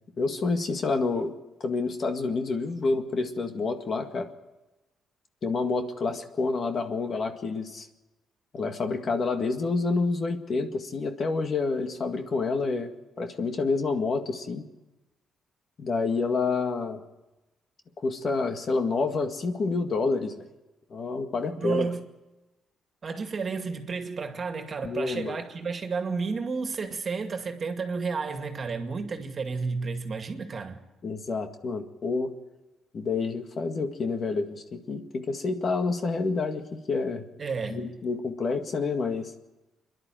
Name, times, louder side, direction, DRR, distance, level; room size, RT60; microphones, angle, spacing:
voice 1, 0.2-1.3 1.6-4.3 5.4-7.9 8.5-12.9 13.2-14.7 15.8-17.0 18.0-20.4 20.9-21.9 24.8-25.4 31.0-32.3 32.9-37.3 37.7-39.3, left 4 dB, 50° left, 1.9 m, -28 dB
voice 2, 21.6-22.0 23.0-30.8 37.4-38.0, right 4 dB, 40° right, 2.2 m, -31 dB
26.5 x 11.0 x 9.2 m
cardioid pair, 90°, 0 cm